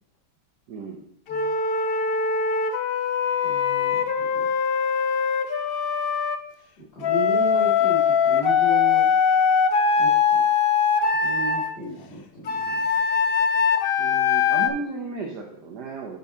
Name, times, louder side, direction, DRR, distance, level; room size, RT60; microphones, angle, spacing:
voice 1, 0.7-1.1 14.0-16.2, right 4 dB, 85° right, 1 dB, 1.5 m, -34 dB
Wind instrument woodwind instrument, 1.3-6.4 7.0-11.7 12.5-14.7, left 6 dB, 60° left, 0.6 m, -22 dB
voice 2, 3.4-4.4 6.8-9.1 10.0-10.4 11.2-12.9, right 1 dB, 35° left, -8 dB, 2.0 m, -34 dB
7.3 x 6.2 x 4.2 m, 0.71 s
omnidirectional pair, 1.7 m